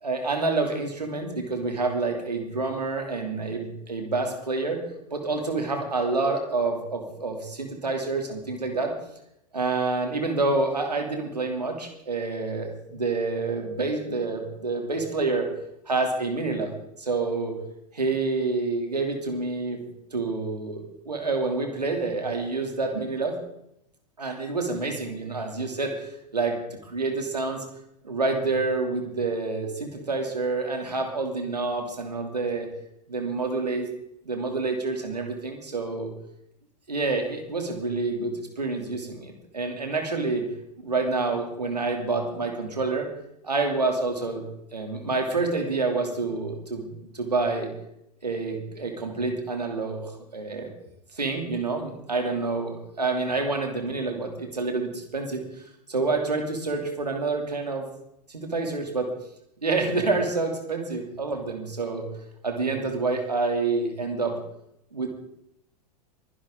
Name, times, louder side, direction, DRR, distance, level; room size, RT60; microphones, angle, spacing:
voice 1, 0.0-4.8 5.1-8.9 9.5-15.5 15.9-16.7 17.0-17.6 17.9-19.8 20.1-23.4 24.2-27.6 28.0-32.7 33.1-33.9 34.2-36.1 36.9-40.4 40.8-43.1 43.4-44.4 44.7-47.7 48.2-50.7 51.1-55.4 55.9-57.9 58.3-59.1 59.6-62.1 62.4-64.4 64.9-65.1, right 3 dB, 85° right, 3 dB, 3.1 m, -28 dB
23.5 x 11.5 x 3.9 m, 0.79 s
figure-of-eight pair, 90°, 20 cm